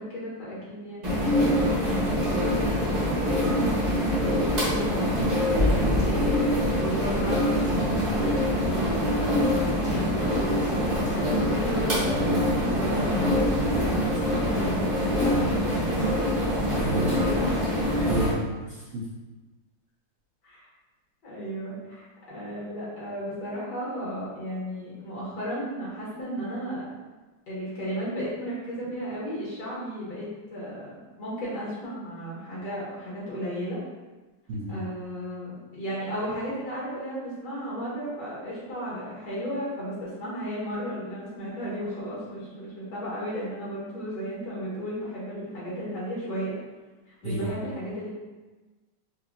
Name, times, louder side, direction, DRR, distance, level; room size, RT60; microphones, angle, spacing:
voice 1, 0.0-7.6 7.9-16.1 16.7-17.5 20.4-20.6 21.2-26.9 27.5-33.8 34.7-46.5 47.2-48.1, equal, 70° left, -7 dB, 1.9 m, -34 dB
sound 1, 1.0-18.3, equal, 30° right, 0.8 m, -24 dB
voice 2, 16.7-17.1 18.0-19.0 34.5-34.8 47.2-47.5, right 1 dB, 65° right, -7 dB, 0.8 m, -32 dB
4.3 x 2.6 x 2.5 m, 1.2 s
omnidirectional pair, 2.0 m